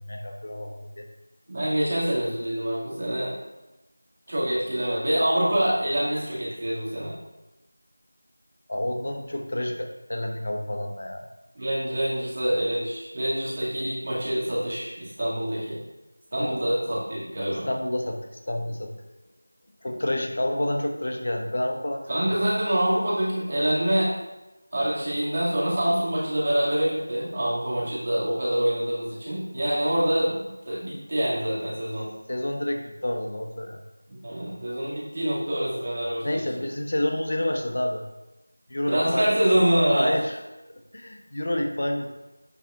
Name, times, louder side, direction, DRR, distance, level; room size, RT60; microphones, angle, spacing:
voice 1, 0.0-1.1 8.7-11.2 16.4-16.5 17.7-18.2 18.5-18.9 19.8-22.0 32.3-33.8 36.2-38.0 38.7-39.2 39.8-40.4 40.9-42.1, left 1 dB, 50° left, 3 dB, 0.8 m, -29 dB
voice 2, 1.5-3.3 4.3-7.1 11.5-15.8 16.3-17.7 22.1-24.1 24.7-32.1 34.2-36.4 38.9-40.2, right 1 dB, 40° right, -7 dB, 2.1 m, -25 dB
10.0 x 4.5 x 2.4 m, 1.0 s
figure-of-eight pair, 175°, 0 cm